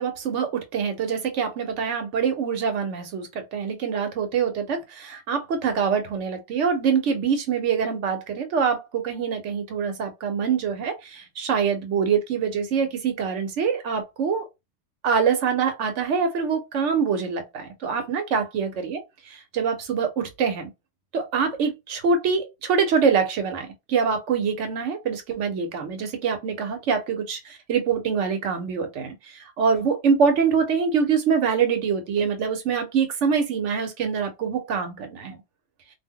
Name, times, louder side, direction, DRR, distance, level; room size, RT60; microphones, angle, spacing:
voice 1, 0.0-14.4 15.0-19.0 19.5-20.7 21.1-29.1 29.6-35.4, right 6 dB, 85° right, 1.1 m, -24 dB
2.5 x 2.1 x 3.6 m
omnidirectional pair, 1.2 m